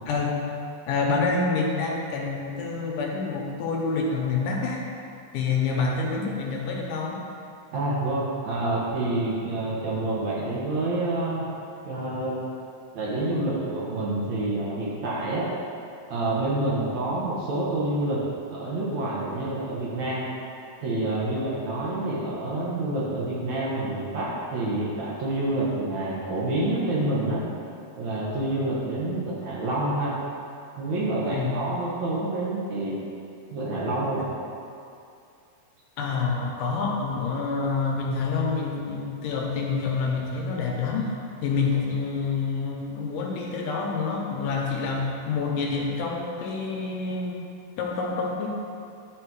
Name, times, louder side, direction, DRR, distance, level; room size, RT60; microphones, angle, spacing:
voice 1, 0.1-0.4 0.9-4.8 5.3-7.2 31.3-31.6 36.0-41.1 41.4-47.4 47.8-48.5, left 4 dB, 75° left, -1 dB, 2.2 m, -27 dB
voice 2, 7.7-11.5 11.8-12.3 12.9-15.5 16.1-18.2 18.5-20.2 20.8-27.4 28.0-30.2 30.8-33.0 33.5-34.3, right 2 dB, 65° right, -6 dB, 2.2 m, -27 dB
10.0 x 4.2 x 4.6 m, 2.5 s
omnidirectional pair, 4.0 m